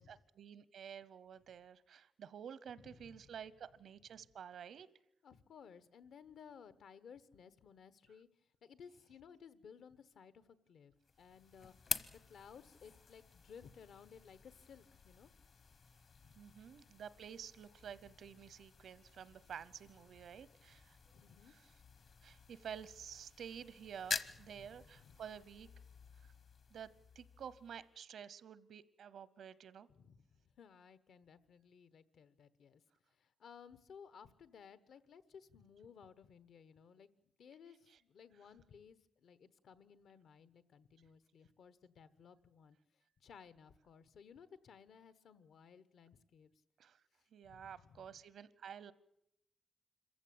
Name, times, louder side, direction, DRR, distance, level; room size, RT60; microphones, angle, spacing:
voice 1, 0.0-4.9 16.4-21.0 21.4-21.7 22.2-25.7 26.2-26.3 26.7-26.9 27.1-29.9 37.9-38.0 46.8-47.0 47.3-48.9, right 8 dB, 80° right, 18 dB, 0.8 m, -51 dB
voice 2, 2.8-3.2 5.2-8.3 8.6-15.3 16.2-16.7 21.1-21.5 22.0-22.1 24.2-25.2 29.9-32.8 33.1-37.1 37.4-42.8 43.2-46.5 47.4-48.1, left 7 dB, 80° left, 14 dB, 1.1 m, -59 dB
sound 1, 11.0-28.0, left 5 dB, 50° left, 0.9 m, -49 dB
26.5 x 15.0 x 8.7 m, 0.81 s
wide cardioid pair, 175°, 0 cm